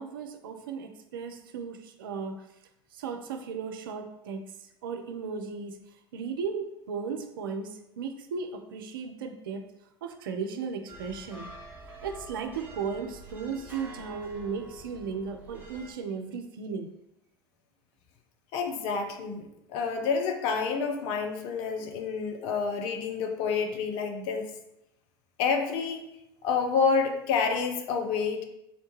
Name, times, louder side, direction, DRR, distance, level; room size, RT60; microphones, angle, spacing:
voice 1, 0.0-2.4 2.9-4.4 4.8-5.8 6.1-9.6 10.0-11.5 12.0-16.9, right 5 dB, 65° right, 6 dB, 0.4 m, -36 dB
sound 1, 10.9-15.9, right 2 dB, 15° right, 0.9 m, -47 dB
voice 2, 18.5-24.5 25.4-26.1 26.4-28.5, left 5 dB, 50° left, 4 dB, 0.5 m, -28 dB
3.9 x 2.1 x 3.0 m, 0.85 s
figure-of-eight pair, 70°, 12 cm